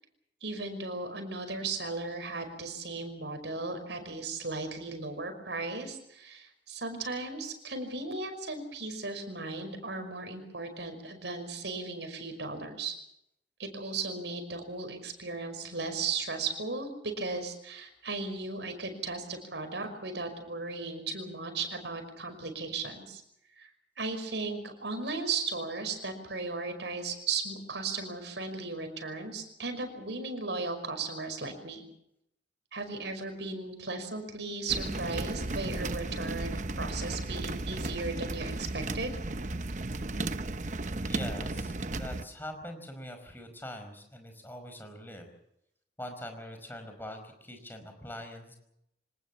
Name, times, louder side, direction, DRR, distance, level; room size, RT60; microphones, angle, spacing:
voice 1, 0.4-13.0 13.6-23.2 23.6-23.7 24.0-31.9 32.7-39.1, right 3 dB, 85° right, 7 dB, 5.5 m, -36 dB
sound 1, 34.7-42.2, right 2 dB, 45° right, 0.9 m, -34 dB
voice 2, 41.0-45.3 46.0-48.6, left 1 dB, 10° left, 6 dB, 5.0 m, -43 dB
25.5 x 19.5 x 7.2 m, 0.78 s
head